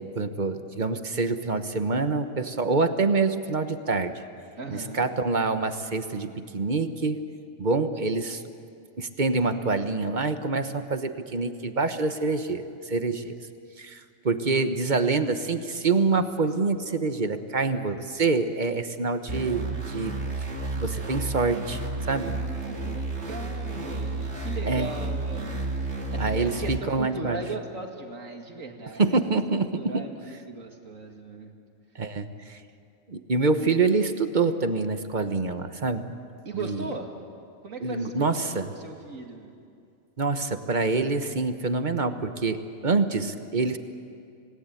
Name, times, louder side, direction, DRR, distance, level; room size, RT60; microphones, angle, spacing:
voice 1, 0.0-4.1 4.7-7.3 7.6-8.4 9.0-13.4 13.8-20.1 20.7-21.8 22.1-22.4 24.7-24.9 26.2-27.4 29.0-29.8 31.9-32.6 33.1-36.1 36.7-36.8 37.8-38.6 40.2-43.8, right 3 dB, 40° right, 9 dB, 1.2 m, -26 dB
voice 2, 4.6-5.1 22.1-29.1 29.6-31.5 36.4-37.1 37.6-39.6, right 3 dB, 80° right, 3 dB, 2.7 m, -38 dB
sound 1, 19.3-26.8, right 2 dB, 60° right, 2.3 m, -31 dB
26.5 x 19.5 x 9.0 m, 2.4 s
omnidirectional pair, 1.4 m